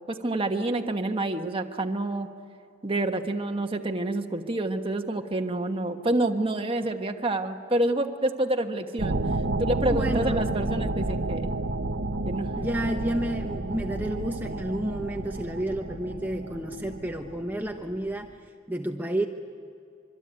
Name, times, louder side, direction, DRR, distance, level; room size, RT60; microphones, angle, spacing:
voice 1, 0.1-2.3 2.8-9.2 9.6-11.5 12.2-12.5, right 1 dB, 25° right, 4 dB, 1.4 m, -28 dB
sound 1, 9.0-18.1, right 2 dB, 55° right, 1.1 m, -31 dB
voice 2, 9.9-10.4 12.6-18.3 18.7-19.3, right 1 dB, 10° right, 3 dB, 1.0 m, -30 dB
25.5 x 24.0 x 8.9 m, 2.4 s
head